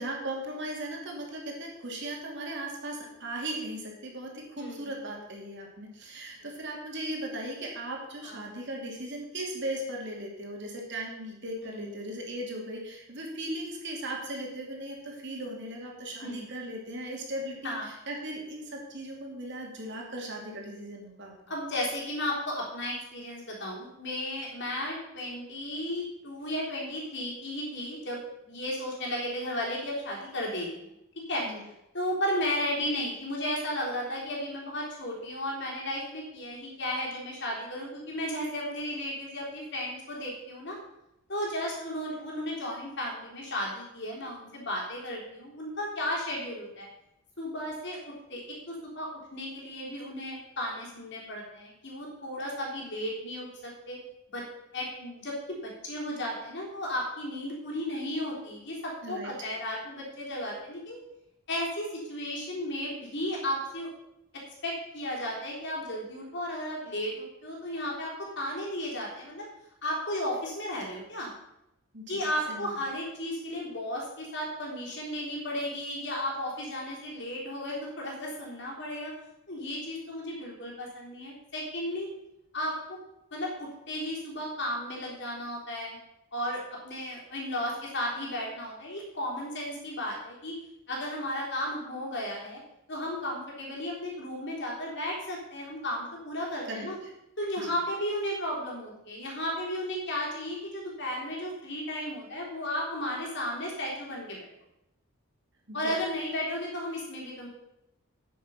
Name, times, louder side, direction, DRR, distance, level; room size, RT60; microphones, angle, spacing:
voice 1, 0.0-21.3 31.4-31.6 59.0-59.5 71.9-72.7 96.6-97.1 97.6-97.7 105.7-106.0, right 1 dB, 50° right, -1 dB, 2.7 m, -38 dB
voice 2, 4.6-4.9 8.2-8.4 11.6-12.1 16.2-16.4 17.6-17.9 21.5-28.2 28.5-30.9 31.3-31.4 31.9-40.8 41.3-46.9 47.4-48.0 48.3-48.4 48.7-54.0 54.3-54.4 54.7-61.0 61.5-63.9 64.6-69.5 69.8-71.3 72.1-79.1 79.5-82.1 82.5-83.0 83.3-86.0 86.3-90.5 90.9-92.6 92.9-97.0 97.4-104.5 105.7-107.5, left 1 dB, 50° left, -2 dB, 3.6 m, -34 dB
9.3 x 8.4 x 5.7 m, 0.85 s
head